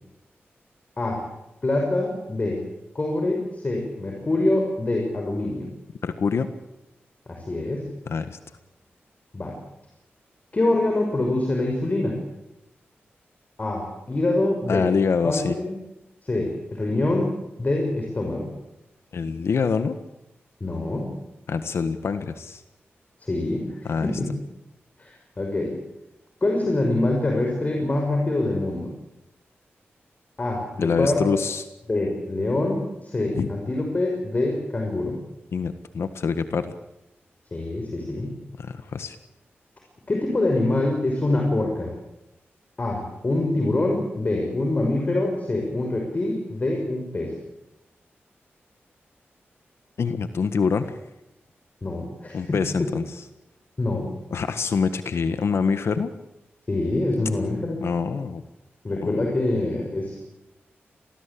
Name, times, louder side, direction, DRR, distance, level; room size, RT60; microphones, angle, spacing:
voice 1, 1.6-2.6 2.9-5.7 7.3-7.9 9.3-9.5 10.5-12.2 13.6-14.9 15.2-15.7 16.2-17.3 17.6-18.5 20.6-21.1 23.2-23.7 24.0-24.2 25.0-25.7 26.4-28.9 30.4-31.4 31.9-35.2 37.5-38.3 40.1-41.9 42.8-47.3 51.8-52.6 53.8-54.1 56.7-57.8 58.8-60.2, left 2 dB, 35° left, 1 dB, 5.9 m, -25 dB
voice 2, 6.0-6.5 8.1-8.4 14.7-15.6 19.1-20.0 21.5-22.6 23.8-24.1 30.8-31.6 33.3-33.5 35.5-36.7 38.6-39.1 50.0-51.0 52.3-53.1 54.3-56.1 57.8-58.4 59.0-59.2, left 5 dB, 75° left, 10 dB, 1.5 m, -25 dB
26.0 x 19.5 x 8.6 m, 0.89 s
wide cardioid pair, 90°, 4 cm